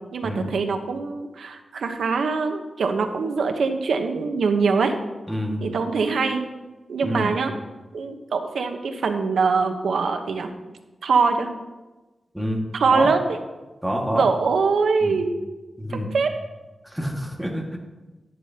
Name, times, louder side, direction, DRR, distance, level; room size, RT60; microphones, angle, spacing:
voice 1, 0.1-4.9 5.6-6.4 6.9-7.5 7.9-10.5 11.0-11.5 12.7-13.2 14.1-15.3 16.1-16.3, right 4 dB, 90° right, 6 dB, 0.9 m, -23 dB
voice 2, 5.3-5.6 7.0-7.3 12.3-12.6 12.9-13.1 13.8-14.3 15.0-15.2 15.8-16.1 16.8-17.8, equal, 5° right, 0 dB, 1.8 m, -27 dB
10.5 x 10.5 x 2.9 m, 1.1 s
wide cardioid pair, 100°, 0 cm